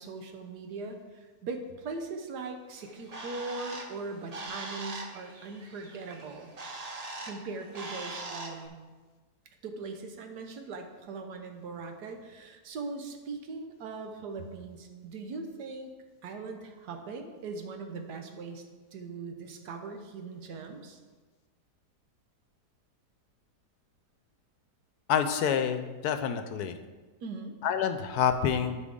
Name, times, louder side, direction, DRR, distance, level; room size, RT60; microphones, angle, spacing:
voice 1, 0.0-6.5 7.3-8.8 9.6-15.9 16.2-18.6 18.9-21.0 27.2-27.6, right 3 dB, 80° right, 5 dB, 1.5 m, -40 dB
Bird, 2.8-8.7, right 2 dB, 35° right, 0.6 m, -42 dB
voice 2, 25.1-26.8 27.6-28.8, left 8 dB, 75° left, 9 dB, 1.1 m, -27 dB
12.5 x 5.0 x 3.6 m, 1.3 s
omnidirectional pair, 1.7 m